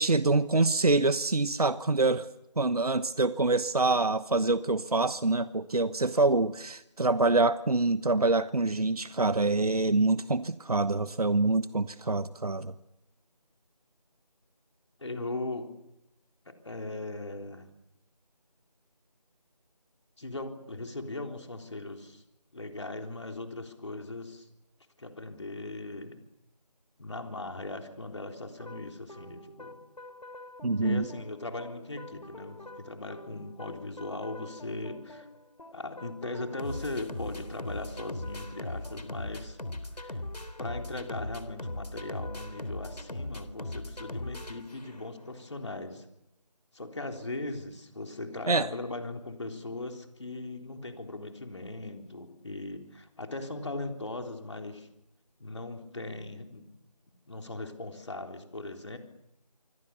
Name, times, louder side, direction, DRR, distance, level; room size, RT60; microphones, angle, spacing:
voice 1, 0.0-2.3 2.6-12.7 30.6-31.0 48.5-48.7, right 3 dB, 65° right, 1.1 m, -26 dB
voice 2, 15.0-15.7 16.5-17.7 20.2-22.2 22.5-24.5 25.0-26.2 27.0-29.8 30.8-35.3 35.7-39.6 40.0-40.2 40.6-46.0 46.7-54.9 55.4-56.7 57.3-59.0, left 2 dB, 45° left, 3.8 m, -39 dB
sound 1, 28.6-45.2, left 1 dB, 75° left, 3.5 m, -41 dB
26.0 x 25.0 x 7.0 m
figure-of-eight pair, 175°, 21 cm